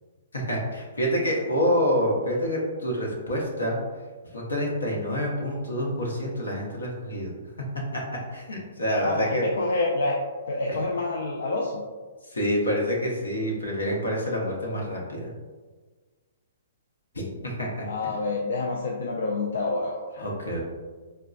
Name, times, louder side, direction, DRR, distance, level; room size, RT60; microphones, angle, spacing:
voice 1, 0.3-3.8 4.3-7.3 7.9-8.0 8.3-9.4 10.7-10.8 12.3-15.3 17.1-18.2 20.2-20.6, equal, 90° left, -1 dB, 0.8 m, -27 dB
voice 2, 9.0-10.2 10.5-11.8 17.9-20.3, left 3 dB, 70° left, -2 dB, 0.4 m, -27 dB
4.0 x 2.2 x 2.3 m, 1.4 s
hypercardioid pair, 135°, 0 cm